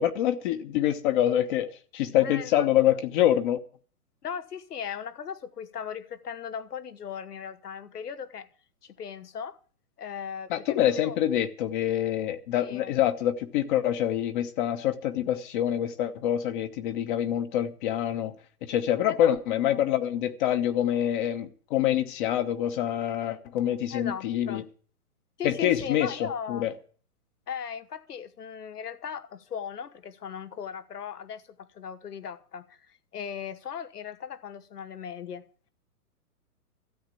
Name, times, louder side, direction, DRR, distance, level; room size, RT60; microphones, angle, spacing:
voice 1, 0.0-3.6 10.5-18.3 18.6-24.6 25.4-26.7, left 11 dB, 35° left, 1.1 m, -26 dB
voice 2, 2.1-2.9 4.2-8.5 8.8-9.6 10.0-11.2 12.6-12.9 19.1-19.4 19.6-19.9 23.9-24.7 25.4-26.7 27.5-35.5, left 7 dB, 80° left, 1.3 m, -38 dB
13.0 x 8.2 x 8.3 m
hypercardioid pair, 130°, 46 cm